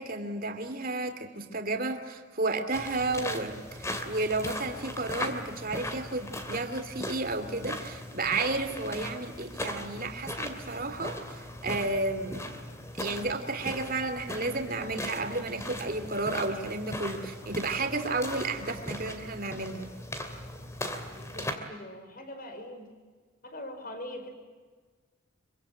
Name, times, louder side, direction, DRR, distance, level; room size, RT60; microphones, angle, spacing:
voice 1, 0.0-12.4 13.0-19.9, right 2 dB, 45° right, 7 dB, 2.8 m, -32 dB
sound 1, 2.7-21.6, left 1 dB, 15° left, 2.6 m, -39 dB
voice 2, 21.1-22.9 23.4-24.3, left 1 dB, 40° left, 6 dB, 5.1 m, -42 dB
26.0 x 24.5 x 9.3 m, 1.4 s
head